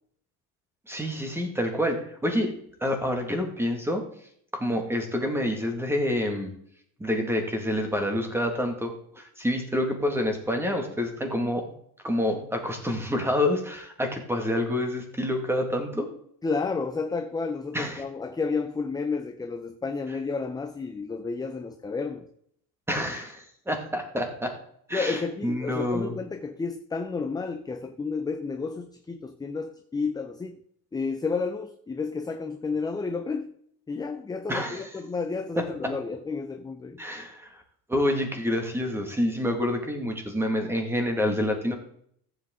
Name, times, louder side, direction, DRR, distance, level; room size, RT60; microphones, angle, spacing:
voice 1, 0.9-2.5 2.8-4.0 4.5-6.5 7.0-11.7 12.0-16.1 17.7-18.0 22.9-24.5 24.9-26.1 34.5-34.9 35.6-35.9 37.0-37.5 37.9-41.7, left 1 dB, 5° right, 4 dB, 1.8 m, -28 dB
voice 2, 16.4-22.3 24.9-30.6 30.9-33.5 33.9-37.0, left 4 dB, 10° left, 6 dB, 0.5 m, -31 dB
14.5 x 7.8 x 3.7 m, 0.67 s
cardioid pair, 145°, 39 cm